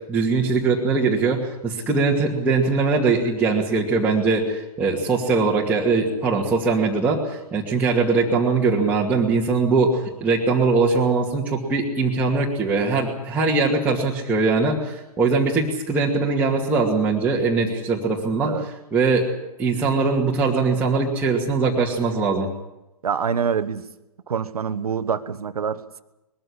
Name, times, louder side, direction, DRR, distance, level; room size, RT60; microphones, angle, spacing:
voice 1, 0.1-18.5 18.9-19.3 19.6-22.5, right 4 dB, 10° right, -5 dB, 2.4 m, -21 dB
voice 2, 23.0-23.8 24.3-26.0, right 6 dB, 70° right, 13 dB, 1.3 m, -25 dB
21.0 x 14.5 x 9.9 m, 0.95 s
figure-of-eight pair, 125°, 20 cm